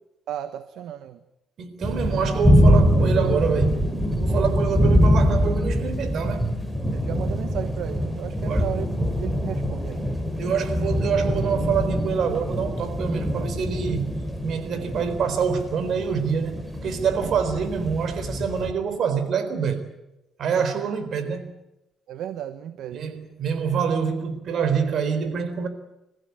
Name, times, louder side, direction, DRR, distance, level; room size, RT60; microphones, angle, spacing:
voice 1, 0.3-1.2 4.3-4.5 6.9-8.9 9.2-10.2 17.1-17.3 20.5-20.6 22.1-23.1, right 10 dB, 80° right, 1.1 m, -34 dB
voice 2, 1.6-3.8 4.2-6.6 8.4-8.6 10.4-19.9 20.4-21.5 22.9-25.7, right 6 dB, 65° right, 4.0 m, -26 dB
sound 1, 1.8-18.7, equal, 5° right, 4.1 m, -24 dB
26.5 x 15.0 x 9.5 m
cardioid pair, 90°, 0 cm